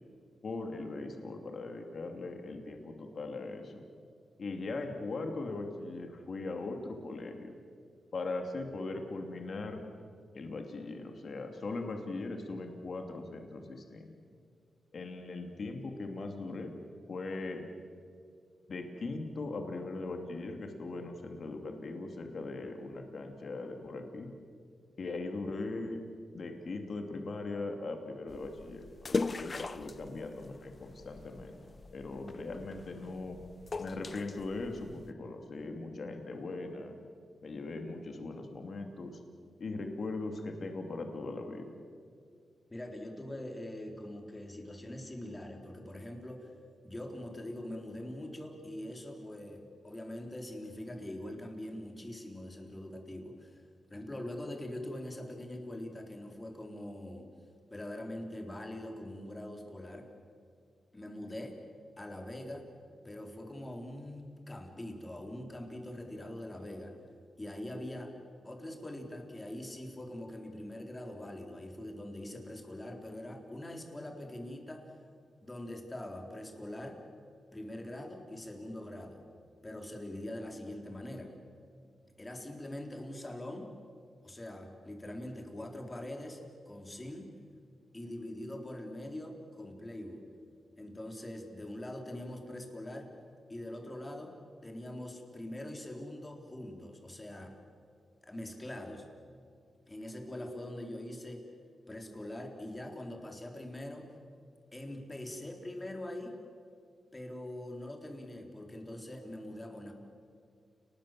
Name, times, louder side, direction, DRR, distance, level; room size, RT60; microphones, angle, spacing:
voice 1, 0.4-3.8 4.4-7.5 8.1-9.8 10.3-14.1 14.9-16.7 17.1-17.6 18.7-24.3 25.0-26.0 26.3-31.6 31.9-33.4 33.8-37.0 37.4-39.2 39.6-41.8, left 3 dB, 55° left, 4 dB, 2.7 m, -39 dB
sound 1, 28.3-35.1, left 3 dB, 40° left, 0.9 m, -40 dB
voice 2, 42.7-46.5 46.8-53.6 53.9-57.3 57.7-60.1 60.9-61.6 62.0-62.7 63.0-67.0 67.4-68.1 68.4-74.9 75.4-77.0 77.5-79.2 79.6-81.3 82.2-83.7 84.2-87.3 87.9-90.3 90.8-93.1 93.5-94.4 94.6-97.6 98.2-99.1 99.9-101.4 101.9-104.2 104.7-106.4 107.1-109.9, left 1 dB, 20° left, 3 dB, 4.0 m, -43 dB
30.0 x 20.0 x 7.7 m, 2.2 s
cardioid pair, 90°, 0 cm